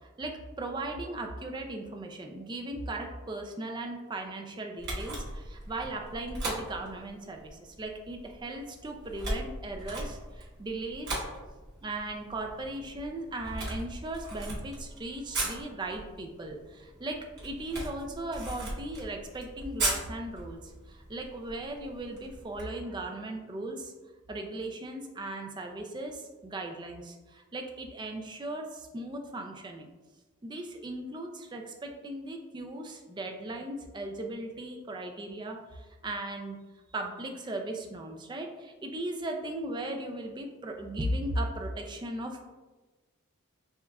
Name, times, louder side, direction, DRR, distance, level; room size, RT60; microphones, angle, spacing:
voice 1, 0.2-11.2 11.8-23.9 24.3-29.9 30.4-36.7 36.9-42.5, right 1 dB, 20° right, 3 dB, 0.3 m, -37 dB
Camera, 4.8-22.6, right 2 dB, 50° right, 1.1 m, -39 dB
6.9 x 2.4 x 2.3 m, 1.2 s
head